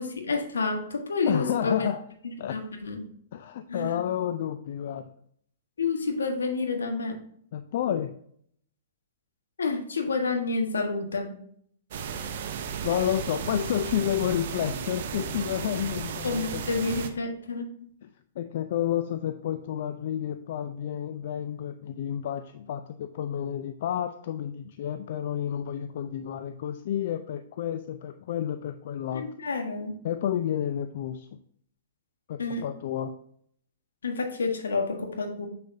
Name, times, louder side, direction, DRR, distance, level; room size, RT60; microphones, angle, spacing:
voice 1, 0.0-1.9 2.5-3.0 3.7-4.0 5.8-7.2 9.6-11.4 16.2-17.9 29.1-30.0 32.4-32.6 34.0-35.5, left 4 dB, 80° left, 4 dB, 1.4 m, -29 dB
voice 2, 1.3-2.0 2.4-2.6 3.3-5.1 7.5-8.1 12.8-16.6 18.4-29.3 30.0-31.4 32.3-33.1, left 10 dB, 55° left, 9 dB, 0.4 m, -30 dB
sound 1, 11.9-17.1, right 7 dB, 55° right, 0.8 m, -34 dB
6.7 x 6.5 x 2.7 m, 0.64 s
hypercardioid pair, 115°, 0 cm